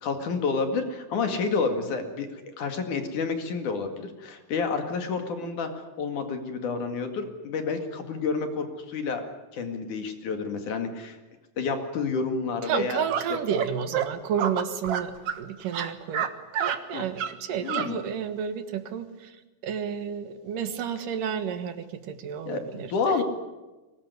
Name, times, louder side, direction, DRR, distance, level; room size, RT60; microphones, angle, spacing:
voice 1, 0.0-9.2 9.5-11.2 11.6-13.0 13.3-13.4 16.9-17.0 17.6-18.0 22.5-23.2, left 4 dB, 70° left, 6 dB, 3.6 m, -29 dB
voice 2, 12.6-16.3 16.6-19.4 19.6-23.2, right 8 dB, 80° right, 9 dB, 3.2 m, -31 dB
sound 1, 13.1-13.2 13.5-13.7 13.9-14.1 14.4-15.4 15.7-16.3 16.5-16.8 17.2-17.3 17.7-17.9, right 9 dB, 55° right, 2.2 m, -28 dB
23.5 x 19.5 x 9.7 m, 1.1 s
omnidirectional pair, 3.8 m